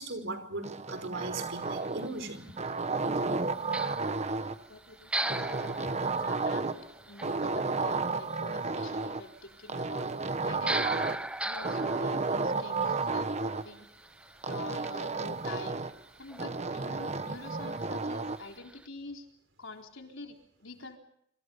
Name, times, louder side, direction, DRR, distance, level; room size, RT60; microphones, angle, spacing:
voice 1, 0.0-2.6, right 2 dB, 70° right, 8 dB, 5.0 m, -38 dB
sound 1, 0.6-2.2 2.6-4.6 5.3-6.9 7.2-9.2 9.7-11.3 11.6-13.6 14.4-16.0 16.4-18.4, right 3 dB, 35° right, 1.2 m, -32 dB
sound 2, 1.5-18.9, right 1 dB, 5° right, 0.9 m, -42 dB
voice 2, 4.0-5.7 6.2-6.8 7.1-10.1 10.4-11.1 11.4-13.9 14.5-15.8 16.2-19.3 19.6-21.0, left 3 dB, 85° left, 3 dB, 4.0 m, -46 dB
28.0 x 26.0 x 5.4 m, 0.72 s
head